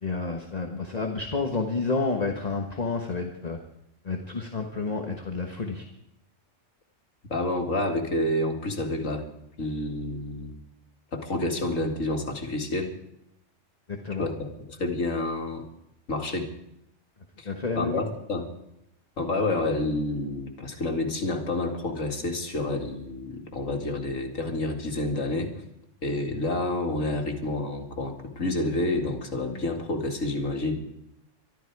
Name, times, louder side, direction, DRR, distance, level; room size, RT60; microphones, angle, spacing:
voice 1, 0.0-3.6 4.0-5.8 13.9-14.3 17.4-18.0, left 3 dB, 30° left, 3 dB, 1.4 m, -30 dB
voice 2, 7.3-9.2 9.6-10.6 11.1-12.9 14.2-15.6 16.1-16.5 17.4-18.5 19.2-25.5 26.0-30.8, left 2 dB, 85° left, 3 dB, 2.5 m, -29 dB
22.5 x 12.5 x 4.8 m, 0.81 s
omnidirectional pair, 1.3 m